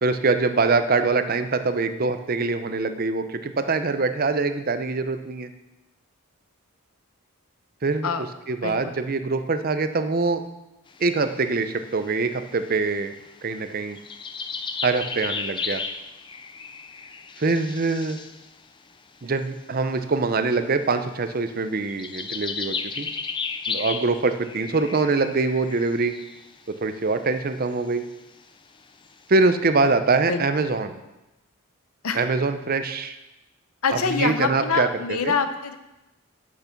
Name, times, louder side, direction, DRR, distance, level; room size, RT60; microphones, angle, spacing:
voice 1, 0.0-5.5 7.8-10.4 11.0-13.1 13.4-14.0 14.8-15.8 17.4-18.2 19.2-23.1 23.7-26.2 26.7-28.0 29.3-31.0 32.1-33.2 33.9-34.9 35.2-35.3, right 3 dB, 40° right, 9 dB, 0.6 m, -24 dB
voice 2, 8.6-9.0 30.3-30.4 32.0-32.2 33.8-35.8, left 5 dB, 80° left, 9 dB, 0.8 m, -25 dB
sound 1, 10.9-18.5 19.4-19.5 19.8-20.1 21.0-21.2 21.9-26.6 27.7-27.8 28.1-28.5 29.0-29.1, left 5 dB, 20° left, 0.4 m, -34 dB
8.5 x 6.8 x 5.8 m, 0.98 s
head